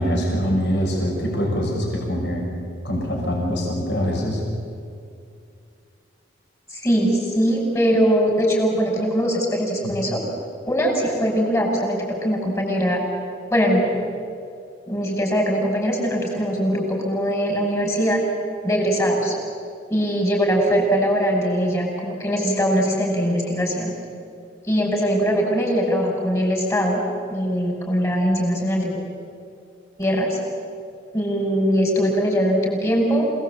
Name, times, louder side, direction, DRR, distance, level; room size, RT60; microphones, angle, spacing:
voice 1, 0.0-2.5 2.8-4.4 9.8-9.9, equal, 65° left, -1 dB, 6.1 m, -23 dB
voice 2, 6.7-10.2 10.6-13.0 13.5-13.8 14.9-18.2 18.6-19.3 19.9-23.9 24.6-27.0 27.3-29.0 30.0-30.4 31.1-33.2, equal, 15° left, 0 dB, 6.1 m, -21 dB
27.5 x 19.5 x 8.4 m, 2.4 s
head